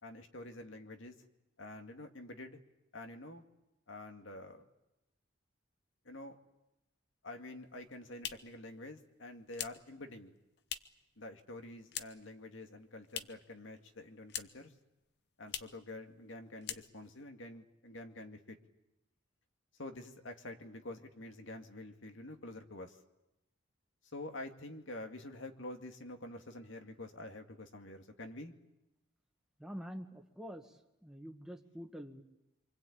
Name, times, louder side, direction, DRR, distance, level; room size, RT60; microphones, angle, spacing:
voice 1, 0.0-1.2 1.6-2.6 2.9-3.4 3.9-4.7 6.0-6.4 7.2-10.3 11.2-14.7 15.4-18.6 19.8-23.0 24.1-28.5, left 2 dB, 75° left, 5 dB, 2.2 m, -47 dB
sound 1, 7.6-11.1 11.4-12.4 12.6-13.5 13.8-14.7 15.0-15.1 15.4-15.8 16.2-16.3 16.6-17.2, left 9 dB, 55° left, 1.0 m, -44 dB
voice 2, 29.6-30.8 31.0-32.2, equal, 5° right, 3 dB, 1.6 m, -46 dB
27.0 x 24.5 x 8.6 m, 0.95 s
head